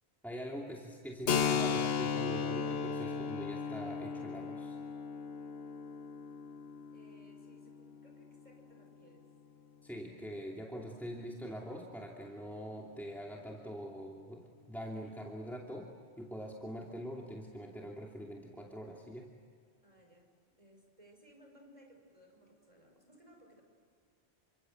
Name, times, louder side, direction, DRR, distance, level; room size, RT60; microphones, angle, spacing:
voice 1, 0.2-4.8 9.8-15.9 16.2-19.3, equal, ahead, -2 dB, 2.7 m, -43 dB
Keyboard (musical), 1.3-8.6, left 6 dB, 65° left, 1.1 m, -36 dB
voice 2, 6.9-9.3 19.8-20.3 20.6-23.6, right 1 dB, 30° right, 2 dB, 6.0 m, -61 dB
29.5 x 25.5 x 8.0 m, 2.1 s
omnidirectional pair, 1.1 m